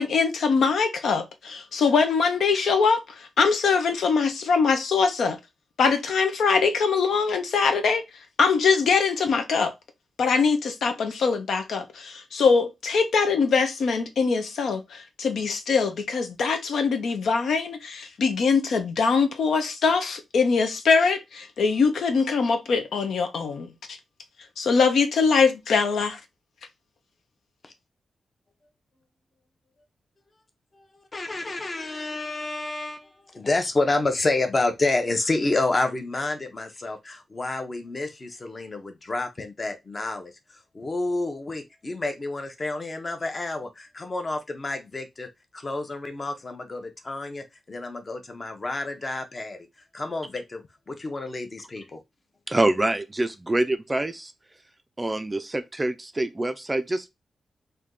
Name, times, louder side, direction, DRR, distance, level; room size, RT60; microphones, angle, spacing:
voice 1, 0.0-5.4 5.8-8.0 8.4-9.7 10.2-24.0 24.6-26.2, left 5 dB, 80° left, 0.8 m, -23 dB
voice 2, 31.1-40.3 40.7-49.6 49.9-52.0, left 2 dB, 25° left, 0.7 m, -29 dB
voice 3, 52.5-54.3 55.0-57.1, right 2 dB, 15° right, 0.3 m, -25 dB
3.4 x 2.7 x 3.7 m
wide cardioid pair, 155°, 0 cm